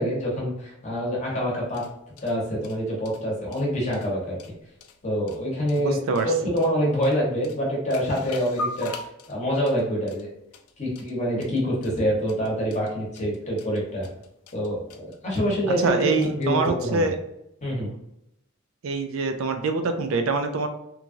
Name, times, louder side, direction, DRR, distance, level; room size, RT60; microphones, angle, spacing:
voice 1, 0.0-1.8 2.2-4.4 5.0-6.0 6.2-8.9 9.3-10.3 10.8-14.1 14.5-17.1 17.6-17.9, equal, 30° left, -4 dB, 1.0 m, -26 dB
sound 1, 1.5-16.7, left 2 dB, 85° left, 0.4 m, -42 dB
voice 2, 5.8-6.3 15.8-17.2 18.8-20.7, right 3 dB, 65° right, 7 dB, 0.4 m, -24 dB
3.0 x 2.3 x 2.6 m, 0.81 s
head